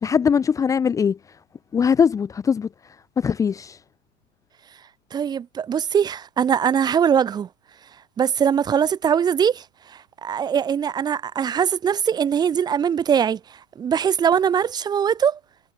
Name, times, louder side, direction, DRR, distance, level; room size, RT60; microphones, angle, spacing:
voice 1, 0.0-1.2 1.7-2.7 3.2-3.8, left 6 dB, 10° left, 2.3 m, -20 dB
voice 2, 5.1-7.5 8.2-13.4 13.8-15.4, right 8 dB, 10° right, 3.1 m, -21 dB
hypercardioid pair, 170°, 37 cm